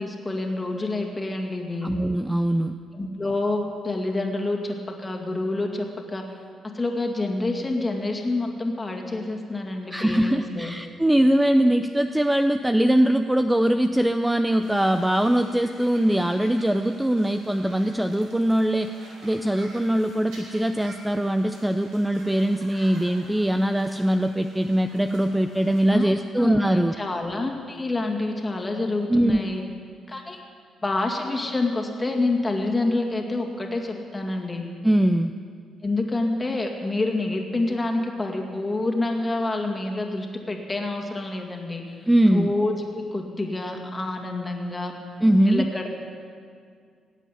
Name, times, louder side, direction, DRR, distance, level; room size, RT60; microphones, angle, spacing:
voice 1, 0.0-1.9 2.9-6.4 6.6-10.7 25.9-26.1 26.4-29.6 30.1-30.4 30.8-34.7 35.8-44.9 45.4-45.9, left 2 dB, 20° left, 2 dB, 2.2 m, -27 dB
voice 2, 1.8-2.7 9.9-18.9 19.2-26.9 29.1-29.5 34.8-35.3 42.1-42.5 45.2-45.6, right 1 dB, 5° right, 8 dB, 0.5 m, -21 dB
sound 1, 14.6-25.8, right 1 dB, 85° right, 4.8 m, -48 dB
18.5 x 8.2 x 8.3 m, 2.2 s
cardioid pair, 90°, 0 cm